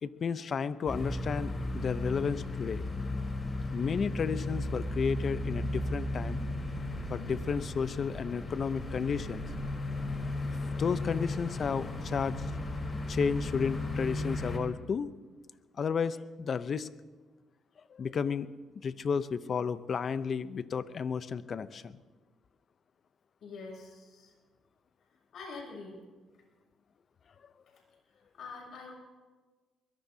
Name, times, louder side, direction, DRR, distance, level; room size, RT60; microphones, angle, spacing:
voice 1, 0.0-2.8 3.7-6.4 7.1-9.5 10.8-12.4 13.1-15.1 15.8-16.9 17.9-18.5 18.8-22.0, left 6 dB, 50° left, 13 dB, 0.7 m, -32 dB
sound 1, 0.9-14.6, left 2 dB, 35° left, 3.9 m, -35 dB
voice 2, 23.4-24.3 25.3-26.0 27.7-27.8 28.0-28.9, left 4 dB, 70° left, -1 dB, 7.2 m, -45 dB
23.0 x 21.0 x 2.8 m, 1.3 s
cardioid pair, 90°, 0 cm